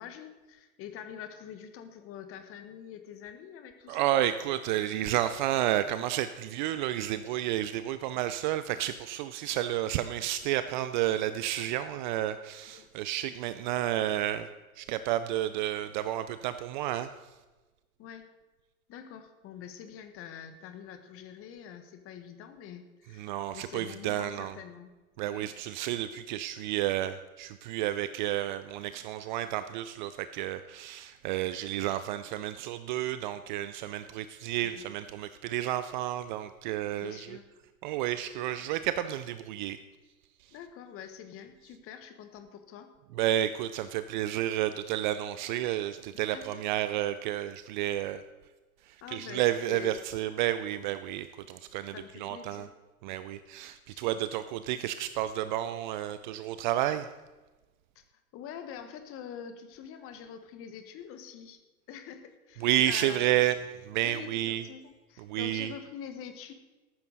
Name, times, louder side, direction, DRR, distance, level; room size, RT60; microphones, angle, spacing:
voice 1, 0.0-4.1 12.7-12.9 18.0-18.3 18.9-24.9 25.3-25.5 34.2-34.3 34.6-34.8 37.0-37.4 40.5-42.9 46.3-46.6 49.0-49.4 49.7-50.0 51.9-52.7 53.9-54.4 57.9-61.6 61.9-63.4 64.0-66.5, left 8 dB, 30° left, 9 dB, 1.5 m, -45 dB
voice 2, 3.9-14.5 14.8-17.1 23.2-24.5 25.2-37.4 37.8-39.8 43.2-48.2 49.1-51.9 52.2-52.7 53.0-57.1 62.6-63.5 63.8-64.6 65.3-65.7, right 13 dB, 35° right, 12 dB, 0.5 m, -31 dB
14.0 x 12.0 x 4.1 m, 1.2 s
figure-of-eight pair, 105°, 44 cm